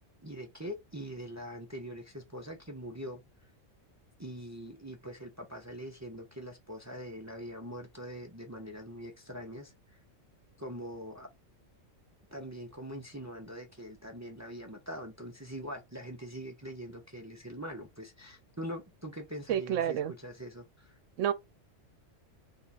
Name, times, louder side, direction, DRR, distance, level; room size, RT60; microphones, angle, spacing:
voice 1, 0.2-3.5 4.2-10.0 10.6-11.3 12.3-21.0, equal, 25° right, 0.4 m, -43 dB
voice 2, 19.5-20.1 21.2-21.3, right 10 dB, 85° right, 0.9 m, -29 dB
3.6 x 2.3 x 4.0 m
omnidirectional pair, 1.3 m